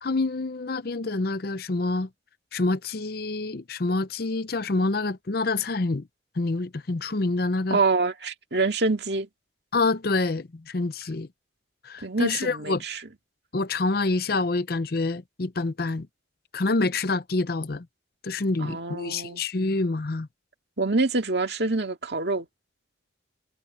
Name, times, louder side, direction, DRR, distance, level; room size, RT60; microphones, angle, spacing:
voice 1, 0.0-2.1 2.5-6.0 6.4-7.8 9.7-11.3 11.8-12.8 13.5-16.1 16.5-17.9 18.2-20.3, left 3 dB, 50° left, 0.6 m, -27 dB
voice 2, 7.7-9.3 12.0-13.0 18.6-19.4 20.8-22.5, right 3 dB, 60° right, 2.2 m, -26 dB
head